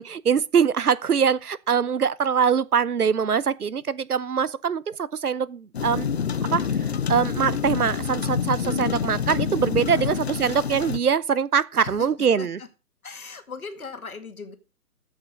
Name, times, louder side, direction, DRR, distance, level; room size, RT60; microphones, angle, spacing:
voice 1, 0.0-6.1 6.5-6.7 7.1-12.6, right 7 dB, 70° right, 0.8 m, -23 dB
sound 1, 5.7-11.0, left 7 dB, 45° left, 0.8 m, -27 dB
voice 2, 9.8-10.2 11.8-12.1 12.4-12.7 13.0-14.5, left 5 dB, 65° left, 2.3 m, -38 dB
14.0 x 6.2 x 5.2 m
figure-of-eight pair, 135°, 47 cm